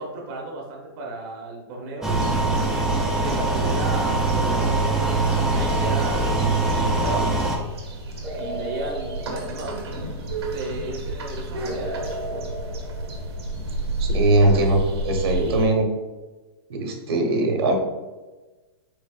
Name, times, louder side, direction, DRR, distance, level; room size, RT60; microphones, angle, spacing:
voice 1, 0.0-2.4 3.2-7.3 8.4-9.9 10.5-12.2, right 2 dB, 45° right, 0 dB, 0.8 m, -34 dB
sound 1, 2.0-7.6, right 2 dB, 5° right, 0.4 m, -22 dB
sound 2, 2.1-15.7, right 2 dB, 85° right, 1.1 m, -32 dB
sound 3, 5.6-7.0 8.2-10.4 11.7-13.8, right 1 dB, 15° left, 1.1 m, -36 dB
voice 2, 14.0-15.9 16.7-17.7, right 2 dB, 70° right, 2 dB, 1.0 m, -20 dB
4.7 x 3.9 x 2.3 m, 1.2 s
hypercardioid pair, 145°, 13 cm